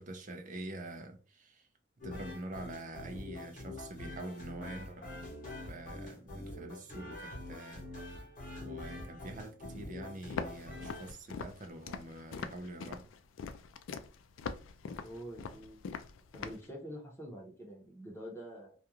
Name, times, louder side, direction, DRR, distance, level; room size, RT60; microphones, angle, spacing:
voice 1, 0.0-1.7 2.0-5.2 5.7-7.9 8.6-13.1, right 2 dB, 45° right, 0.5 m, -45 dB
sound 1, 2.0-11.1, left 2 dB, 45° left, 0.9 m, -45 dB
Walk footsteps, 10.3-16.7, left 5 dB, 90° left, 0.3 m, -42 dB
voice 2, 15.0-16.1 16.3-18.7, equal, 15° left, 0.8 m, -46 dB
2.4 x 2.3 x 2.9 m
head